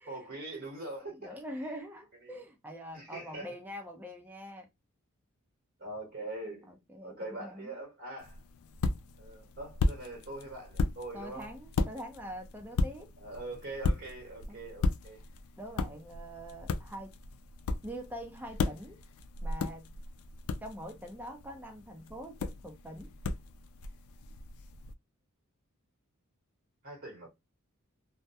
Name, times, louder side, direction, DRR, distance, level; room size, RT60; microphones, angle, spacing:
voice 1, 0.1-1.2 1.7-1.8 2.2-2.4 2.9-3.5 5.8-6.7 7.0-8.4 9.2-11.5 13.2-15.2 26.8-27.3, right 2 dB, 45° right, 1.0 m, -43 dB
voice 2, 1.0-4.7 6.7-7.8 11.1-13.1 14.5-14.6 15.6-17.1 17.8-19.0 19.4-19.9 20.6-23.1, equal, 10° right, 0.5 m, -44 dB
sound 1, 8.2-24.9, left 3 dB, 70° left, 0.3 m, -36 dB
2.2 x 2.1 x 2.6 m
head